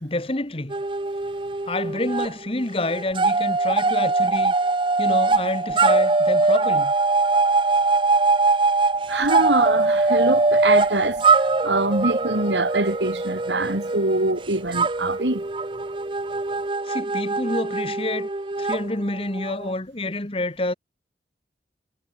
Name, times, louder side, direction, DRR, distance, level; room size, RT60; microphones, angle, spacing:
voice 1, 0.0-0.7 1.7-4.5 5.0-6.9 16.8-18.3 18.6-20.7, left 2 dB, 30° left, 1.6 m, -28 dB
sound 1, 0.7-2.3 2.6-19.7, right 3 dB, 30° right, 0.6 m, -22 dB
voice 2, 9.1-11.2 11.6-15.4, right 2 dB, 85° right, 3.9 m, -23 dB
head